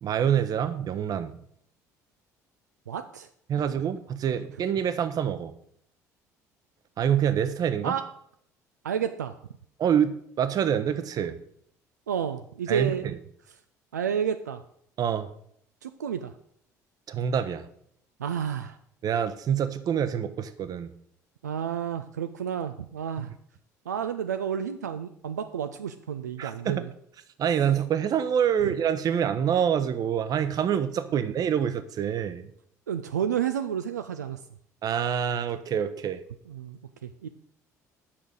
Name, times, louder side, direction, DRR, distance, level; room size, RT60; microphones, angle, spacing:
voice 1, 0.0-1.4 3.5-5.5 7.0-7.9 9.8-11.4 12.7-13.1 15.0-15.3 17.1-17.7 19.0-20.9 26.4-26.8 27.4-32.5 34.8-36.2, right 8 dB, 45° right, 12 dB, 0.8 m, -26 dB
voice 2, 2.9-3.3 3.6-3.7 7.8-8.1 8.8-9.4 12.1-13.1 13.9-14.6 15.8-16.3 18.2-18.8 21.4-23.3 23.9-26.9 28.6-28.7 31.1-31.3 32.9-34.4 36.5-37.3, right 8 dB, 80° right, 8 dB, 0.4 m, -31 dB
8.7 x 6.1 x 5.1 m, 0.68 s
figure-of-eight pair, 55°, 9 cm